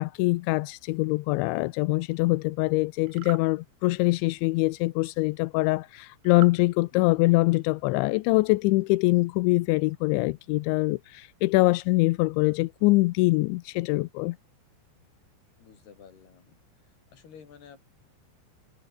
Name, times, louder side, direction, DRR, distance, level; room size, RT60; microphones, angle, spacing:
voice 1, 0.0-14.4, left 22 dB, 80° left, 2.9 m, -24 dB
sound 1, 3.0-3.5 6.2-6.6, right 18 dB, 80° right, 2.8 m, -40 dB
voice 2, 6.9-7.9 15.6-16.5 17.1-17.9, left 7 dB, 55° left, 5.9 m, -52 dB
omnidirectional pair, 5.5 m